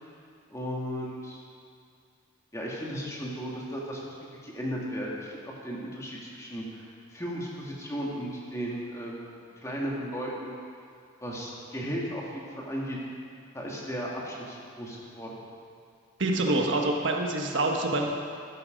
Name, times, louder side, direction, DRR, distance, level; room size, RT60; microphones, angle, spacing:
voice 1, 0.5-1.4 2.5-10.5 11.2-13.0 13.5-15.4, equal, 15° left, -4 dB, 2.2 m, -35 dB
voice 2, 16.2-18.1, right 2 dB, 65° right, 1 dB, 1.3 m, -26 dB
13.0 x 12.5 x 5.2 m, 2.3 s
head